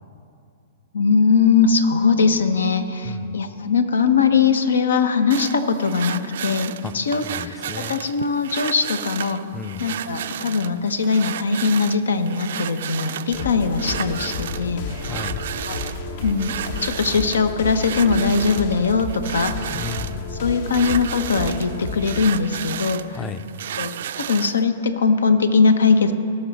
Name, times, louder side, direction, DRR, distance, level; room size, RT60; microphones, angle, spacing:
voice 1, 0.9-9.4 9.8-14.8 15.6-15.8 16.2-16.5 16.8-19.6 20.4-23.2 23.8-26.1, left 5 dB, 85° left, 10 dB, 0.8 m, -20 dB
sound 1, 5.3-24.6, right 10 dB, 65° right, 0.3 m, -33 dB
voice 2, 7.2-8.0 9.5-9.8 15.0-15.4 19.7-20.4 23.1-23.4, left 5 dB, 15° left, 11 dB, 0.5 m, -33 dB
sound 2, 13.3-22.3, left 4 dB, 60° left, 1.1 m, -31 dB
18.0 x 6.1 x 4.1 m, 2.5 s
hypercardioid pair, 120°, 0 cm